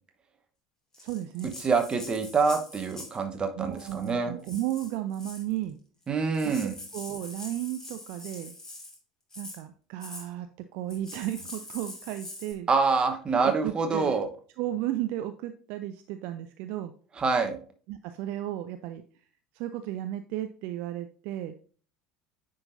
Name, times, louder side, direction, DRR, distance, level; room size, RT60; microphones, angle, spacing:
Rattle (instrument), 0.9-3.2 3.7-4.1 4.4-5.5 6.1-6.2 6.3-9.0 9.3-9.6 10.0-10.3 10.9-12.5, left 2 dB, 15° left, 2.3 m, -44 dB
voice 1, 1.0-1.5 3.6-5.8 6.6-8.5 9.4-10.5 10.7-12.7 13.4-14.2 14.6-16.9 17.9-19.0 19.5-21.5, right 13 dB, 55° right, 9 dB, 0.4 m, -34 dB
voice 2, 1.6-4.3 6.1-6.7 12.7-14.3 17.2-17.6, right 4 dB, 25° right, 6 dB, 1.1 m, -26 dB
9.6 x 3.8 x 2.6 m, 0.41 s
figure-of-eight pair, 70°, 3 cm